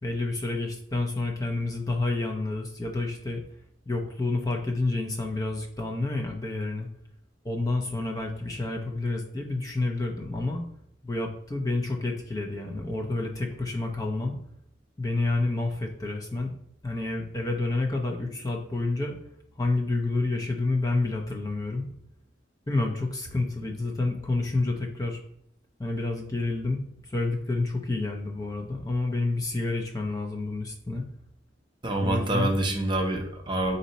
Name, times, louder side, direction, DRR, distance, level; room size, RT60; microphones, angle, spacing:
voice 1, 0.0-3.4 3.9-6.9 7.4-10.6 11.0-14.4 15.0-16.5 16.8-19.2 19.6-21.9 22.7-25.2 25.8-31.0 32.0-32.5, left 2 dB, 20° left, 1 dB, 0.5 m, -29 dB
voice 2, 31.8-33.8, right 1 dB, 25° right, 2 dB, 0.6 m, -26 dB
4.1 x 2.7 x 4.0 m, 0.73 s
head